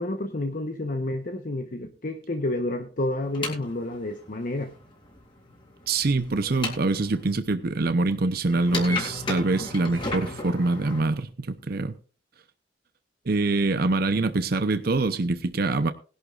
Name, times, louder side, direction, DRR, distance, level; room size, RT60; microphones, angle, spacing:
voice 1, 0.0-4.7, left 1 dB, 50° left, 1.0 m, -30 dB
sound 1, 3.2-7.3 8.5-11.0, left 2 dB, 30° left, 3.9 m, -34 dB
voice 2, 5.9-11.9 13.3-15.9, right 3 dB, 55° right, 0.7 m, -24 dB
20.0 x 11.5 x 2.5 m
head